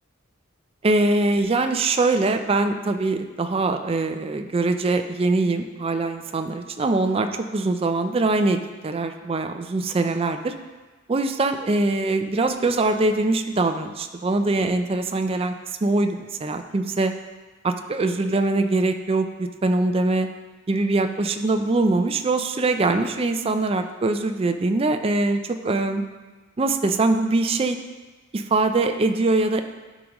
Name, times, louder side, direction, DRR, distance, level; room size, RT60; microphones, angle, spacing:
voice 1, 0.8-10.5 11.1-15.5 15.8-17.1 17.6-20.3 20.7-26.0 26.6-27.8 28.3-29.6, right 2 dB, 25° right, 7 dB, 0.4 m, -23 dB
12.0 x 5.0 x 3.0 m, 1.3 s
head